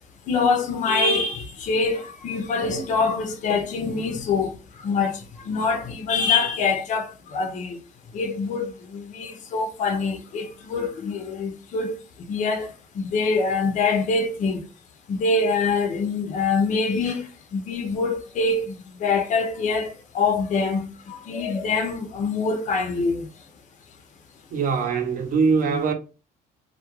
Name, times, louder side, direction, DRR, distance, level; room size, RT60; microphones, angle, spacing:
voice 1, 0.3-4.5 4.8-7.8 8.1-12.0 12.3-14.6 15.1-18.7 19.0-23.3, left 4 dB, 50° left, 0.5 m, -25 dB
voice 2, 24.5-25.9, right 5 dB, 55° right, 0.7 m, -22 dB
2.3 x 2.0 x 2.9 m
cardioid pair, 110°, 17 cm